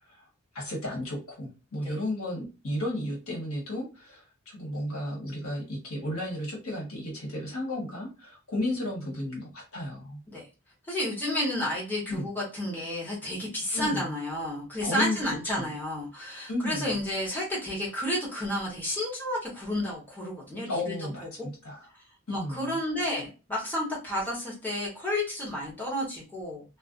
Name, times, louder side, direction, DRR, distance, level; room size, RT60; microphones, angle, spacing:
voice 1, 0.5-10.2 12.1-12.3 13.7-14.1 14.8-15.2 15.6-15.7 16.5-17.0 20.7-21.9 22.3-22.8, left 1 dB, 85° left, -2 dB, 1.1 m, -33 dB
voice 2, 10.9-21.3 22.3-26.8, left 1 dB, 10° left, -5 dB, 1.0 m, -31 dB
2.4 x 2.1 x 2.4 m, 0.30 s
head